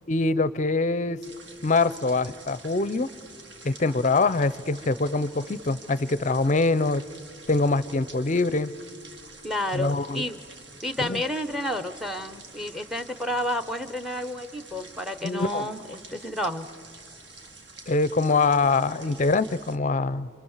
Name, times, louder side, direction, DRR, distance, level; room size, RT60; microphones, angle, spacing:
voice 1, 0.1-1.2 1.6-3.1 3.6-7.0 7.5-8.7 9.7-10.2 11.0-11.2 15.2-15.7 17.9-20.3, left 3 dB, 35° left, 17 dB, 0.5 m, -24 dB
sound 1, 1.2-19.8, right 3 dB, 55° right, 2.1 m, -47 dB
voice 2, 9.4-10.4 10.8-16.7, left 1 dB, ahead, 12 dB, 0.8 m, -31 dB
28.0 x 27.0 x 7.3 m, 2.5 s
head